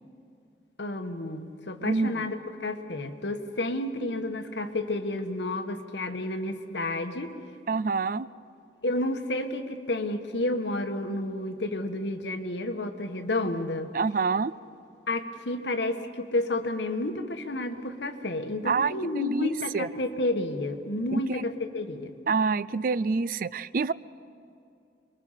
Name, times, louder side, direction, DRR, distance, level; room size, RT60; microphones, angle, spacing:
voice 1, 0.8-7.3 8.8-13.9 15.1-22.1, left 2 dB, 80° left, 7 dB, 1.5 m, -31 dB
voice 2, 1.8-2.2 7.7-8.3 13.9-14.5 18.7-19.9 21.1-21.4 22.3-23.9, right 4 dB, 50° right, 18 dB, 0.5 m, -27 dB
28.0 x 22.5 x 5.8 m, 2.5 s
head